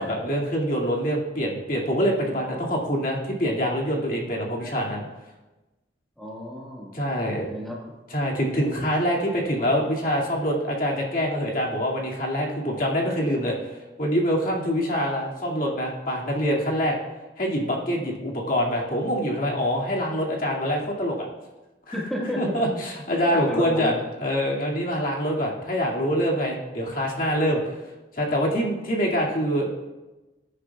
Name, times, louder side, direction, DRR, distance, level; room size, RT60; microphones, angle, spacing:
voice 1, 0.0-5.1 6.9-7.5 8.1-13.5 14.0-17.0 17.4-21.3 21.9-22.0 22.4-23.9 24.2-27.7 28.1-29.7, equal, 50° left, -3 dB, 2.4 m, -25 dB
voice 2, 6.2-7.0 7.3-7.8 21.9-22.4 22.7-22.8 23.3-24.0 28.8-28.9, equal, ahead, -4 dB, 1.6 m, -33 dB
21.0 x 9.8 x 2.4 m, 1.1 s
head